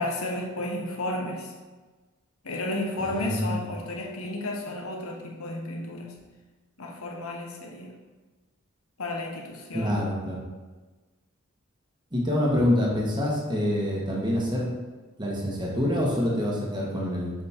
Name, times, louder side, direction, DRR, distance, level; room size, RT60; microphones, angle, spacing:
voice 1, 0.0-1.5 2.4-6.2 6.8-7.9 9.0-10.0, left 2 dB, 80° left, 0 dB, 1.3 m, -32 dB
voice 2, 3.0-3.7 9.7-10.4 12.1-14.7 15.2-17.3, left 1 dB, 20° right, -3 dB, 1.5 m, -26 dB
7.2 x 5.3 x 3.7 m, 1.3 s
head